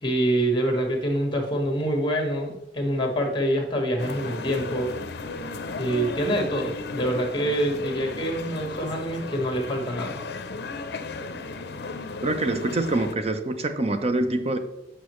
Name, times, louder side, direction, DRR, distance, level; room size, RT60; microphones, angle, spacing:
voice 1, 0.0-4.9 5.8-10.2, right 1 dB, 25° left, 1 dB, 1.5 m, -26 dB
sound 1, 4.0-13.1, left 3 dB, 65° left, 0.6 m, -35 dB
voice 2, 12.2-14.6, right 2 dB, 35° right, 8 dB, 0.7 m, -25 dB
8.3 x 5.4 x 3.1 m, 0.92 s
head